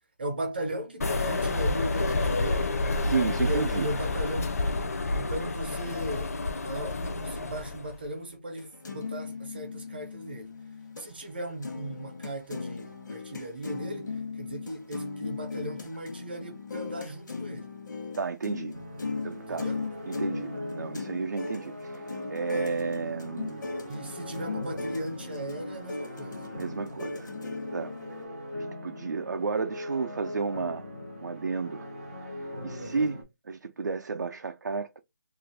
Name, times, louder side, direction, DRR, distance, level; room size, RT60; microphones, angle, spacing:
voice 1, 0.2-2.7 3.4-4.9 5.1-6.3 6.6-10.6 11.0-14.1 14.4-17.7 19.5-19.8 23.8-26.4 32.8-33.1, right 1 dB, 35° right, 0.7 m, -37 dB
sound 1, 1.0-8.0, left 2 dB, 55° left, 0.5 m, -29 dB
voice 2, 3.0-3.9 18.2-18.8 19.2-19.7 20.1-23.7 26.6-27.3 27.7-28.0 28.6-30.9 31.2-31.9 32.2-35.0, right 4 dB, 70° right, 0.4 m, -32 dB
sound 2, 8.6-11.1 11.4-28.3, left 4 dB, 85° left, 0.9 m, -38 dB
sound 3, 18.7-33.2, left 1 dB, 5° right, 0.3 m, -41 dB
2.5 x 2.4 x 3.3 m
hypercardioid pair, 180°, 10 cm